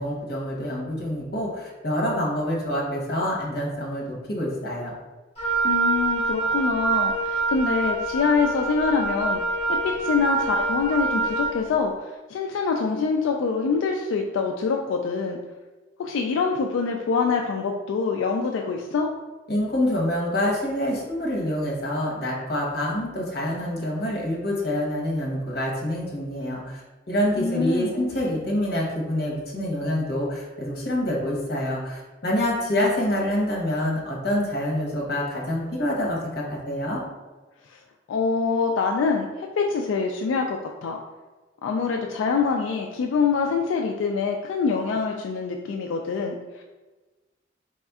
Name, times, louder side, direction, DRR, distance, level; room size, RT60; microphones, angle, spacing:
voice 1, 0.0-4.9 19.5-26.8 27.1-37.0, left 1 dB, 55° left, -4 dB, 1.1 m, -26 dB
Wind instrument woodwind instrument, 5.4-11.6, right 3 dB, 30° left, 1.4 m, -25 dB
voice 2, 5.6-15.4 16.0-19.1 27.4-28.0 38.1-41.0 41.6-46.6, left 5 dB, 90° left, 2 dB, 0.3 m, -25 dB
4.1 x 3.5 x 2.4 m, 1.2 s
head